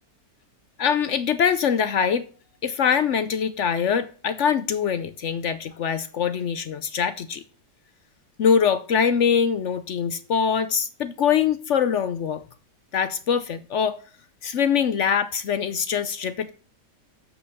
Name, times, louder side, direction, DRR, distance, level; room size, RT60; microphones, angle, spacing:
voice 1, 0.8-2.3 2.6-7.4 8.4-12.4 12.9-14.0 14.4-16.5, left 7 dB, 60° left, 0.8 m, -23 dB
8.1 x 5.8 x 6.7 m
omnidirectional pair, 1.8 m